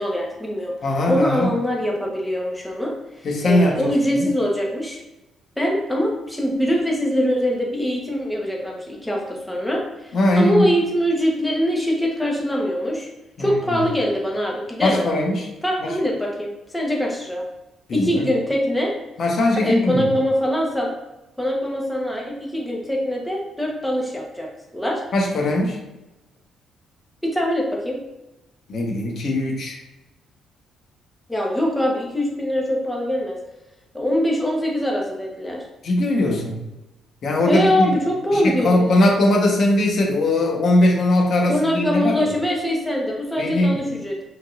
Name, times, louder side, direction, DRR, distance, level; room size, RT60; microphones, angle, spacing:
voice 1, 0.0-0.7 1.1-5.0 5.6-13.1 13.4-15.1 15.6-17.4 17.9-18.9 19.6-20.9 21.4-24.5 24.7-25.0 27.2-28.0 31.3-33.4 33.9-35.6 37.5-38.9 41.5-44.2, equal, 10° left, -2 dB, 1.3 m, -23 dB
voice 2, 0.8-1.5 3.2-4.3 10.1-10.7 13.4-13.8 14.8-15.5 15.8-15.9 17.9-18.3 19.2-20.0 25.1-25.8 28.7-29.8 35.8-36.6 37.2-37.9 38.3-42.2 43.4-43.8, left 1 dB, 60° left, 0 dB, 1.3 m, -20 dB
5.1 x 3.9 x 2.6 m, 0.99 s
cardioid pair, 90°, 0 cm